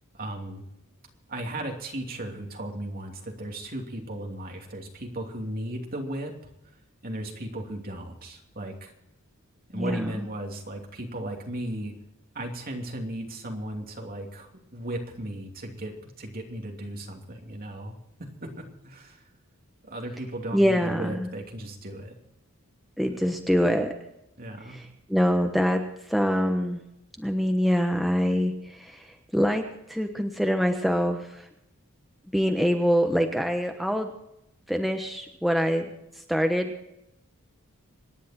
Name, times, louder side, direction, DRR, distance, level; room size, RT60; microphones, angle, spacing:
voice 1, 0.1-0.6 1.3-6.3 7.0-8.9 9.7-11.9 12.3-19.2 19.8-22.2 23.0-23.2 24.4-24.8, right 1 dB, 45° right, 2 dB, 2.9 m, -36 dB
voice 2, 9.7-10.0 20.5-21.3 23.0-23.9 24.7-25.8 26.1-26.8 27.2-29.1 29.3-29.6 29.9-31.4 32.3-34.1 34.7-35.9 36.3-36.7, equal, ahead, 3 dB, 1.2 m, -24 dB
26.5 x 10.5 x 4.4 m, 0.85 s
head